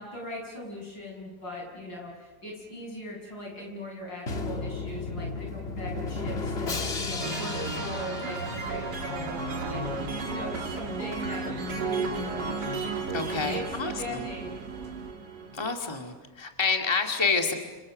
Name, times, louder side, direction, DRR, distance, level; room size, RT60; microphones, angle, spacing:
voice 1, 0.0-12.8 13.5-14.5, left 1 dB, 80° left, -1 dB, 8.2 m, -39 dB
Drum, 4.3-9.1, left 3 dB, 35° left, 1.9 m, -34 dB
sound 1, 7.2-15.7, right 3 dB, 65° right, 2.8 m, -34 dB
sound 2, 8.6-15.1, right 5 dB, 50° right, 1.8 m, -41 dB
voice 2, 13.1-14.2 15.5-17.5, left 4 dB, 15° left, 3 dB, 2.1 m, -28 dB
30.0 x 28.0 x 6.5 m, 1.2 s
omnidirectional pair, 2.0 m